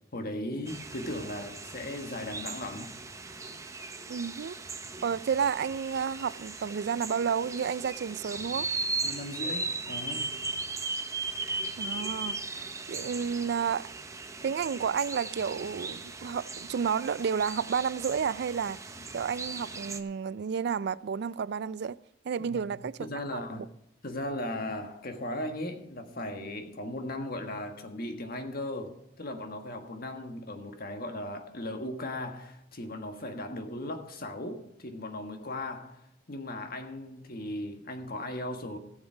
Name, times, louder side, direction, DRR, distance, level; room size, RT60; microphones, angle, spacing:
voice 1, 0.1-3.0 9.0-10.3 22.5-22.7 23.0-23.7 24.0-38.8, left 1 dB, 50° left, 1.5 m, -37 dB
sound 1, 0.7-20.0, right 3 dB, 15° right, 0.8 m, -38 dB
voice 2, 4.1-4.6 5.0-8.7 11.8-13.9 14.4-22.0 22.2-23.1 23.5-23.7, right 7 dB, 60° right, 0.4 m, -31 dB
17.0 x 7.3 x 5.0 m
head